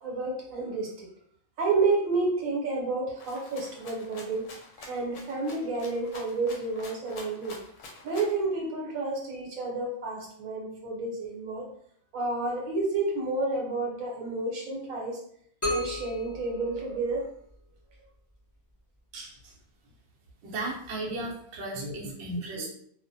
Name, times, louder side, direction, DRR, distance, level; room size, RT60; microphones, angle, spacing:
voice 1, 0.0-1.1 1.6-4.5 4.8-7.6 8.0-11.7 12.1-15.2 15.7-17.3 19.1-19.3 21.7-21.9 22.5-22.7, right 3 dB, 75° right, -2 dB, 1.1 m, -30 dB
Rattle (instrument), 3.2-8.4, left 3 dB, 70° left, 0.9 m, -47 dB
sound 1, 15.6-17.5, left 1 dB, 25° left, 0.4 m, -34 dB
voice 2, 20.4-22.7, right 2 dB, 60° right, -2 dB, 0.7 m, -35 dB
2.3 x 2.0 x 2.6 m, 0.65 s
omnidirectional pair, 1.4 m